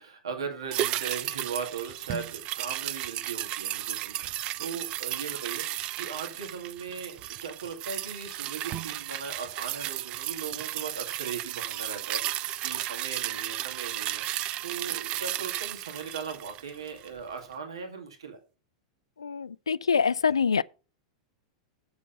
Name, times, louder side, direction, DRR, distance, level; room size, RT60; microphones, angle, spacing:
voice 1, 0.0-18.4, right 5 dB, 75° right, 2.2 m, -39 dB
sound 1, 0.7-17.2 17.5-17.6, right 14 dB, 40° right, 0.5 m, -34 dB
voice 2, 19.2-20.6, left 6 dB, 80° left, 0.3 m, -25 dB
8.3 x 7.1 x 5.3 m
figure-of-eight pair, 95°, 3 cm